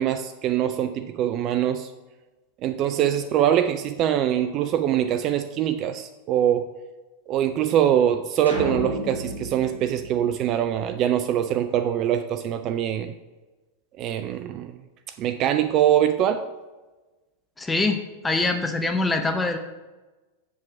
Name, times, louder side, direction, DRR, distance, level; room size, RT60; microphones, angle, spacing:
voice 1, 0.0-1.9 2.6-6.7 7.3-13.1 14.0-14.7 15.2-16.4, right 10 dB, 35° right, 9 dB, 0.4 m, -23 dB
sound 1, 8.5-10.9, equal, 80° left, 2.5 m, -32 dB
voice 2, 17.6-19.6, left 3 dB, 10° left, 5 dB, 0.7 m, -24 dB
7.8 x 7.3 x 4.5 m, 1.2 s
figure-of-eight pair, 90°, 0 cm